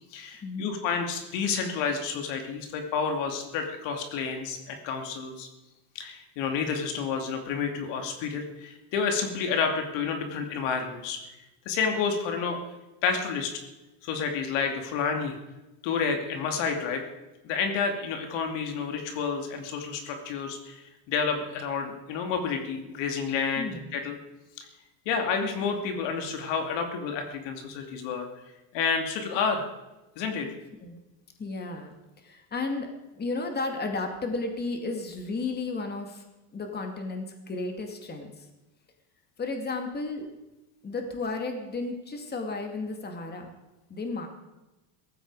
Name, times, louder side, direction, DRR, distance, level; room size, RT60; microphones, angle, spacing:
voice 1, 0.1-5.5 5.9-11.2 11.7-12.6 13.0-13.5 14.0-15.4 15.8-17.0 17.4-24.2 24.6-24.7 25.1-28.3 28.7-29.7 30.2-30.5, left 5 dB, 65° left, 4 dB, 2.7 m, -30 dB
voice 2, 23.6-23.9 30.8-31.0 31.4-36.2 36.5-38.5 39.4-40.3 40.8-43.5 43.9-44.3, left 3 dB, 20° left, 4 dB, 2.4 m, -33 dB
17.5 x 14.5 x 4.9 m, 1.0 s
supercardioid pair, 130°, 46 cm